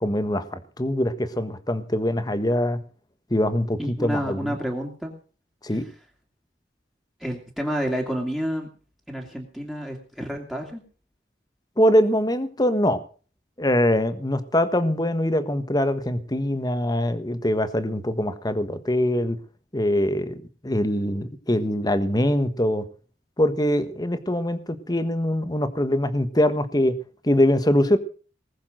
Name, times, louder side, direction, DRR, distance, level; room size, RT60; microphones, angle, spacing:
voice 1, 0.0-2.8 3.3-4.6 5.6-5.8 11.8-13.0 13.6-19.4 19.7-22.8 23.4-26.9 27.2-28.0, left 1 dB, 20° left, 11 dB, 1.3 m, -23 dB
voice 2, 3.8-5.1 5.7-5.8 7.2-8.7 9.1-10.8, equal, ahead, 0 dB, 2.4 m, -29 dB
19.5 x 7.1 x 7.8 m, 0.40 s
head